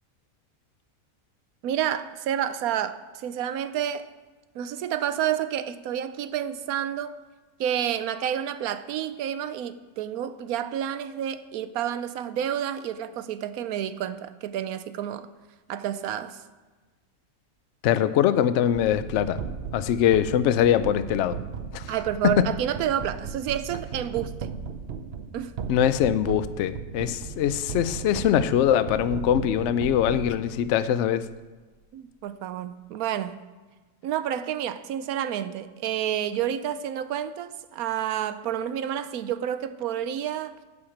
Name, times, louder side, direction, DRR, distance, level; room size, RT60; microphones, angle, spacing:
voice 1, 1.6-4.1 4.5-7.1 7.6-15.3 15.7-16.4 21.9-24.5 25.3-25.6 31.9-33.4 34.0-40.6, right 10 dB, 80° right, 12 dB, 1.1 m, -29 dB
voice 2, 17.8-19.4 19.7-21.4 21.7-21.9 22.2-22.4 25.7-31.3, left 10 dB, 65° left, 13 dB, 0.7 m, -22 dB
sound 1, 18.7-30.8, right 6 dB, 55° right, 0.8 m, -36 dB
8.6 x 6.6 x 7.2 m, 1.3 s
omnidirectional pair, 1.6 m